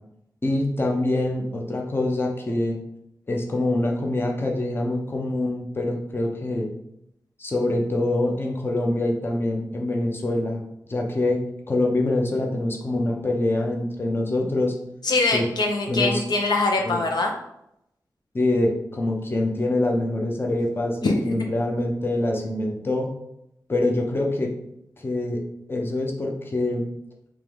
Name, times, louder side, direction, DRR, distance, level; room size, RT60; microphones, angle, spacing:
voice 1, 0.4-2.8 3.3-6.7 7.4-10.6 10.9-14.7 15.3-15.4 15.9-16.2 16.8-17.0 18.3-21.0 21.3-23.1 23.7-24.5 25.0-25.4 25.7-26.8, left 2 dB, 30° left, 0 dB, 0.7 m, -25 dB
voice 2, 15.0-17.3 21.0-21.1, left 3 dB, 75° left, 1 dB, 0.6 m, -23 dB
3.4 x 3.0 x 3.5 m, 0.79 s
wide cardioid pair, 95°, 7 cm